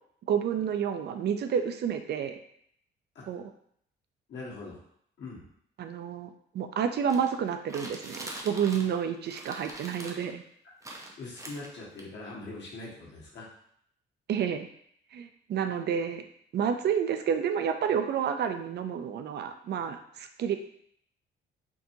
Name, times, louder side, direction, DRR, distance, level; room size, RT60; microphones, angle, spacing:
voice 1, 0.3-2.4 3.3-3.5 5.8-10.4 14.3-14.7 15.1-16.2 16.5-20.6, right 8 dB, 55° right, 7 dB, 0.4 m, -30 dB
voice 2, 4.3-4.8 5.2-5.4 11.2-13.5, left 3 dB, 65° left, -5 dB, 1.5 m, -42 dB
sound 1, 7.1-9.0 9.3-10.3 10.8-12.0, right 1 dB, 15° right, 0.7 m, -43 dB
4.5 x 2.8 x 2.7 m, 0.67 s
cardioid pair, 90°, 20 cm